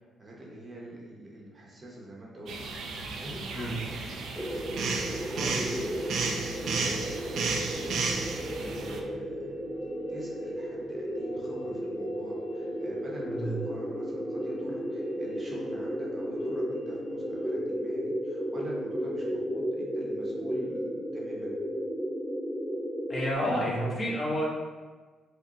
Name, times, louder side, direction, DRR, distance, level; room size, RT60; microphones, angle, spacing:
voice 1, 0.2-9.5 10.1-21.6, equal, 35° right, -3 dB, 0.8 m, -45 dB
sound 1, 2.4-17.6, left 2 dB, 90° left, 0.6 m, -50 dB
sound 2, 2.5-9.0, right 4 dB, 70° right, 0.4 m, -33 dB
sound 3, 4.4-23.3, equal, ahead, 0.3 m, -34 dB
voice 2, 23.1-24.5, equal, 30° left, -6 dB, 1.3 m, -29 dB
4.7 x 2.2 x 2.9 m, 1.3 s
cardioid pair, 90°, 0 cm